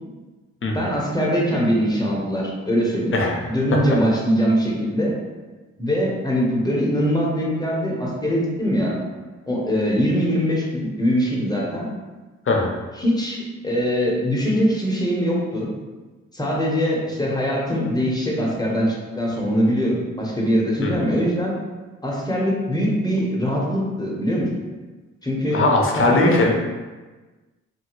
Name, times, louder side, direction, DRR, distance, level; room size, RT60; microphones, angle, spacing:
voice 1, 0.7-3.2 3.5-5.1 5.8-9.0 9.5-11.9 13.0-15.7 16.3-21.5 22.0-24.5 25.2-25.6 26.0-26.4, equal, 10° left, -4 dB, 1.0 m, -22 dB
voice 2, 25.5-26.5, left 2 dB, 40° left, 0 dB, 0.7 m, -19 dB
2.7 x 2.6 x 3.0 m, 1.2 s
hypercardioid pair, 45°, 32 cm